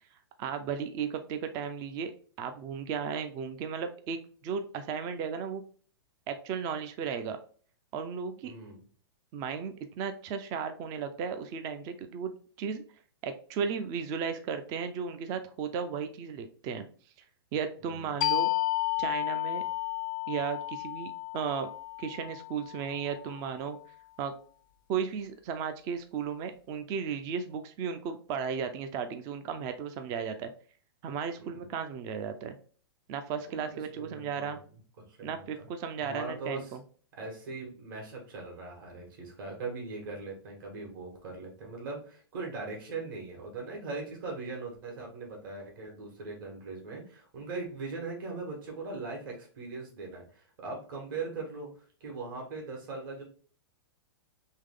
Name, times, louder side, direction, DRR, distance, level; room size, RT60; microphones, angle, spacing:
voice 1, 0.4-2.1 2.4-5.6 6.3-7.4 7.9-8.5 9.3-12.8 13.2-16.9 17.5-18.5 19.0-19.6 20.3-21.7 22.0-23.8 24.2-24.3 24.9-30.5 31.0-32.6 33.1-34.6 35.2-36.8, right 6 dB, 25° right, 8 dB, 0.4 m, -35 dB
voice 2, 8.4-8.8 17.8-18.1 31.4-31.7 33.5-34.6 35.1-35.7 36.0-36.8 37.1-51.7 52.0-53.2, right 3 dB, 55° right, 0 dB, 1.7 m, -40 dB
sound 1, 18.2-23.5, left 20 dB, 50° left, 0.4 m, -32 dB
3.6 x 3.2 x 3.6 m, 0.43 s
hypercardioid pair, 150°, 13 cm